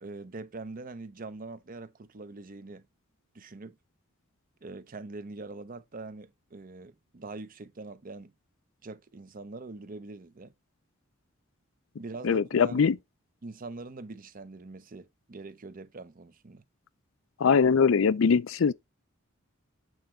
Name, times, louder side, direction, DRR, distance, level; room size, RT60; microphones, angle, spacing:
voice 1, 0.0-2.9 3.3-3.8 4.6-8.3 8.8-10.5 12.0-12.9 13.4-16.6, right 3 dB, 40° right, 0.7 m, -43 dB
voice 2, 12.2-13.0 17.4-18.7, left 6 dB, 65° left, 0.4 m, -22 dB
8.1 x 3.8 x 4.4 m
head